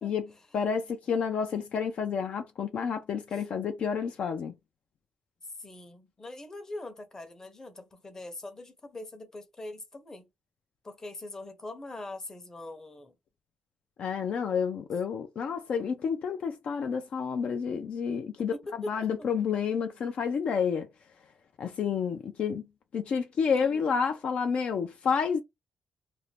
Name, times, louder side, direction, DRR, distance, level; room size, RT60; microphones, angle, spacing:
voice 1, 0.0-0.6 3.3-3.5 5.4-10.3 10.8-13.1 18.5-19.3 23.6-23.8, left 2 dB, 25° left, 0.7 m, -42 dB
voice 2, 0.5-4.5 14.0-18.5 18.9-20.9 21.6-22.6 22.9-25.4, left 6 dB, 60° left, 0.4 m, -29 dB
2.5 x 2.1 x 3.2 m
cardioid pair, 120°, 2 cm